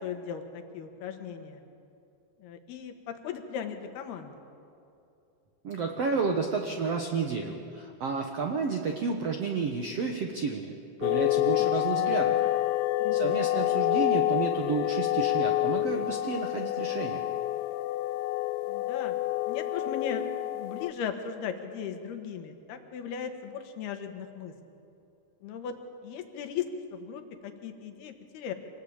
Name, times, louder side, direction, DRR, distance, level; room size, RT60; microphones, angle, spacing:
voice 1, 0.0-1.6 2.4-4.3 11.6-12.0 13.0-13.5 18.7-19.2 19.5-20.2 20.5-24.5 25.4-25.7 26.0-28.5, left 7 dB, 70° left, 6 dB, 3.4 m, -37 dB
voice 2, 5.6-10.7 11.0-12.4 13.1-17.2, right 5 dB, 80° right, 3 dB, 1.4 m, -31 dB
sound 1, 11.0-20.9, left 16 dB, 90° left, 3.0 m, -28 dB
26.0 x 19.5 x 8.9 m, 2.7 s
omnidirectional pair, 5.0 m